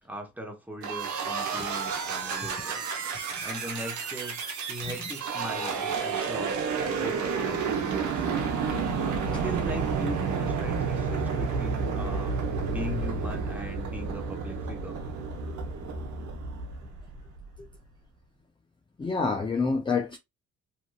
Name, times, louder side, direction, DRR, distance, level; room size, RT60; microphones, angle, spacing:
voice 1, 0.0-2.9 3.4-4.4 4.7-8.5 9.3-12.3 12.7-15.0, equal, 5° right, 1.0 m, -40 dB
sound 1, 0.8-17.4, right 5 dB, 70° right, 0.8 m, -30 dB
voice 2, 19.0-20.2, left 4 dB, 15° left, 0.5 m, -27 dB
2.9 x 2.6 x 2.3 m
cardioid pair, 90°, 30 cm